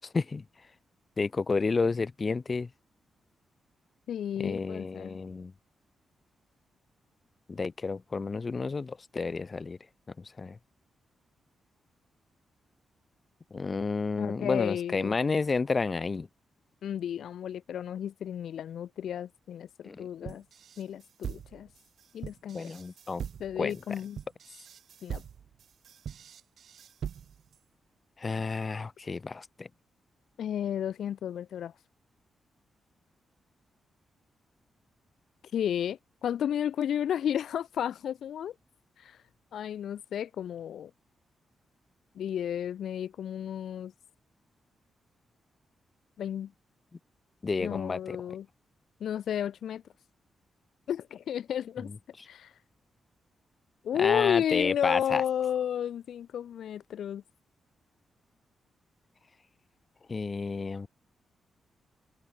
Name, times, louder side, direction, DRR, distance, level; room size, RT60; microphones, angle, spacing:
voice 1, 0.1-0.4 1.2-2.7 4.4-5.5 7.5-9.8 10.2-10.6 13.5-16.3 19.8-20.3 22.5-23.2 23.5-23.8 28.2-29.7 47.4-48.2 51.8-52.0 54.0-55.2 60.1-60.9, left 4 dB, 35° left, 1.0 m, -31 dB
voice 2, 4.1-5.2 14.2-15.1 16.8-19.7 20.0-20.4 20.8-21.7 22.1-22.7 23.4-24.2 25.0-25.2 30.4-31.7 35.5-38.5 39.0-39.2 39.5-40.9 42.2-43.9 46.2-46.5 47.6-48.5 49.0-49.8 50.9-51.9 52.3-52.5 53.8-57.2, left 9 dB, 80° left, 0.5 m, -32 dB
sound 1, 20.3-27.6, right 8 dB, 70° right, 5.4 m, -42 dB
cardioid pair, 110°, 0 cm